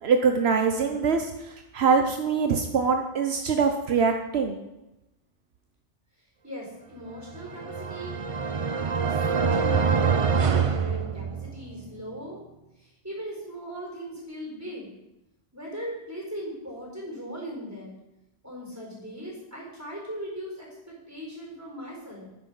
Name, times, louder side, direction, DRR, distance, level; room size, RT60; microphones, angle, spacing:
voice 1, 0.0-4.6, right 5 dB, 75° right, 5 dB, 1.1 m, -24 dB
voice 2, 6.4-8.2 9.0-12.4 12.8-14.9 15.5-17.9 18.4-22.3, equal, 15° right, -2 dB, 4.3 m, -39 dB
sound 1, 7.3-11.7, right 5 dB, 35° right, 0.6 m, -25 dB
9.7 x 9.5 x 5.6 m, 0.93 s
omnidirectional pair, 1.1 m